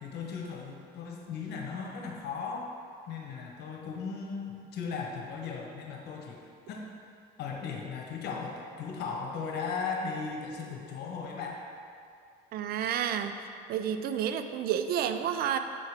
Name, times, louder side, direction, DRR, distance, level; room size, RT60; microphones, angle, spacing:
voice 1, 0.0-2.7 3.1-6.4 6.7-6.9 7.4-11.6, left 5 dB, 80° left, 0 dB, 1.1 m, -37 dB
voice 2, 12.5-13.3 13.7-15.6, right 9 dB, 65° right, 8 dB, 0.5 m, -30 dB
7.6 x 4.7 x 5.0 m, 2.4 s
cardioid pair, 110°, 17 cm